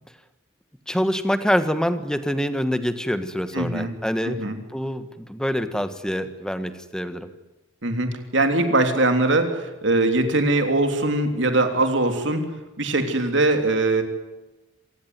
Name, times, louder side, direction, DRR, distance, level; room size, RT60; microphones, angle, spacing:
voice 1, 0.9-7.3, equal, 5° left, 10 dB, 1.4 m, -26 dB
voice 2, 3.5-3.9 4.3-4.6 7.8-12.5 12.8-14.0, right 2 dB, 60° right, 6 dB, 3.4 m, -21 dB
26.5 x 18.5 x 9.7 m, 1.1 s
head